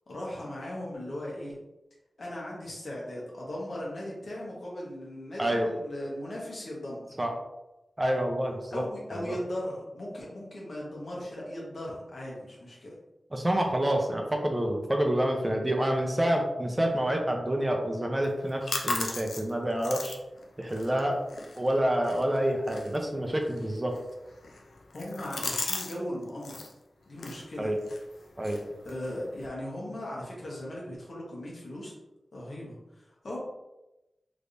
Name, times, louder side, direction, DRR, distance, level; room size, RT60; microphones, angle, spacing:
voice 1, 0.1-1.5 2.2-7.2 8.7-13.0 24.9-26.6 27.1-27.7 28.8-31.9 32.3-33.4, left 1 dB, 65° left, -4 dB, 1.2 m, -38 dB
voice 2, 5.4-5.7 7.2-7.3 8.0-8.8 9.3-9.4 13.3-20.2 20.6-21.2 21.6-24.0 27.6-27.8 28.4-28.6, right 1 dB, 25° right, 2 dB, 0.6 m, -28 dB
sound 1, 18.2-26.0 26.2-26.7 27.1-29.5, left 3 dB, 85° left, 0.4 m, -38 dB
3.5 x 3.0 x 2.6 m, 0.98 s
cardioid pair, 60°, 0 cm